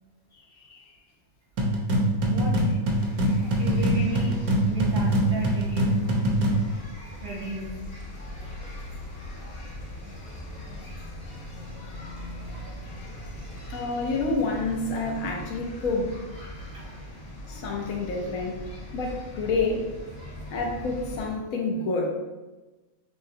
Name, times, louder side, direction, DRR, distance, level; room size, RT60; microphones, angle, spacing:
sound 1, 1.6-6.7, right 1 dB, 75° right, 1.2 m, -23 dB
voice 1, 2.3-2.6 3.5-6.0 7.2-7.7 16.5-16.9, right 3 dB, 55° right, -4 dB, 0.7 m, -34 dB
sound 2, 2.9-21.3, left 1 dB, 45° left, 0.9 m, -40 dB
voice 2, 13.7-16.2 17.5-18.6 18.9-19.9 20.5-22.1, left 3 dB, 75° left, 0 dB, 1.1 m, -28 dB
6.4 x 2.2 x 2.7 m, 1.1 s
omnidirectional pair, 1.5 m